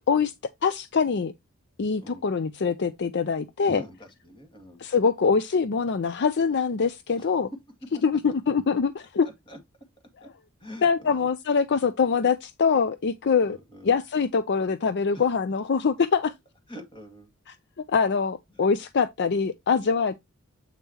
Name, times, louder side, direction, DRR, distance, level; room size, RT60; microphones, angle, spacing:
voice 1, 0.6-1.3 1.8-3.8 4.8-7.5 8.0-9.3 10.8-13.6 13.8-16.3 17.9-20.2, left 5 dB, 50° left, 0.5 m, -24 dB
voice 2, 2.0-2.3 3.6-4.8 7.1-7.3 9.2-9.6 10.2-10.3 10.6-11.3 13.4-14.0 15.1-15.2 16.7-17.3 18.5-18.6, equal, 25° left, 2.1 m, -44 dB
8.1 x 5.5 x 2.8 m
head